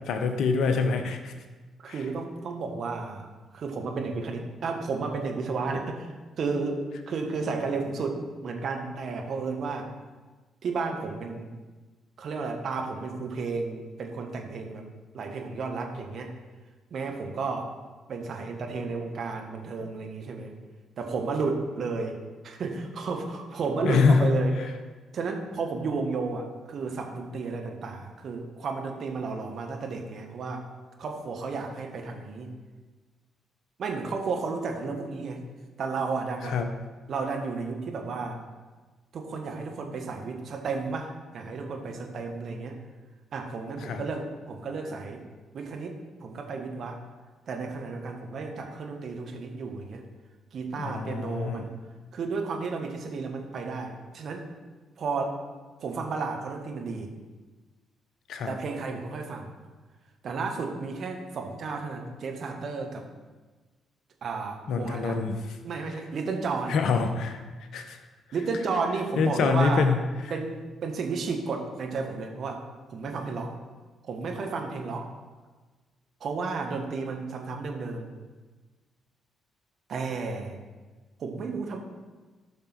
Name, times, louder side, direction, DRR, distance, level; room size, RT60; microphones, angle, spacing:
voice 1, 0.1-1.3 1.9-2.0 23.8-24.3 36.5-36.7 43.8-44.0 50.8-51.6 58.3-58.5 64.7-65.4 66.7-67.4 67.7-68.0 69.2-70.0, left 5 dB, 60° left, 7 dB, 0.9 m, -25 dB
voice 2, 1.8-9.9 10.6-11.5 12.2-14.8 15.1-16.3 16.9-17.7 18.1-20.5 21.0-22.2 22.4-24.6 25.1-30.7 31.0-32.5 33.8-35.4 35.8-36.6 37.1-38.4 39.1-42.8 43.3-45.2 45.5-47.0 47.5-50.0 50.5-51.7 52.1-54.5 55.0-55.4 55.8-57.1 58.5-59.5 60.2-63.0 64.2-65.2 65.6-66.8 68.3-69.9 70.3-72.6 72.9-73.5 74.0-75.1 76.2-78.1 79.9-80.6 81.2-81.8, right 4 dB, 50° right, 2 dB, 1.4 m, -32 dB
13.0 x 5.9 x 4.5 m, 1.3 s
figure-of-eight pair, 40°, 0 cm